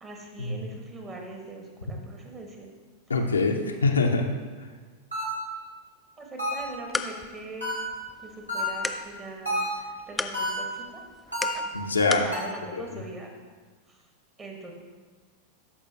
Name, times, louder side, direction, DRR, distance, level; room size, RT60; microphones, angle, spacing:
voice 1, 0.0-2.7 3.6-3.7 6.2-7.7 8.2-11.0 12.2-13.3 14.4-14.7, right 2 dB, 25° right, 1 dB, 1.4 m, -41 dB
voice 2, 3.1-4.3 11.7-12.3 12.7-13.0, left 3 dB, 75° left, 3 dB, 0.7 m, -24 dB
sound 1, 5.1-5.6 6.4-6.8 7.6-8.1 8.5-9.0 9.5-10.0 10.3-10.8 11.3-11.8 12.3-12.7, right 1 dB, 85° right, 2.4 m, -31 dB
sound 2, 6.5-12.4, left 2 dB, 5° left, 0.4 m, -37 dB
13.0 x 4.9 x 2.9 m, 1.4 s
figure-of-eight pair, 90°, 0 cm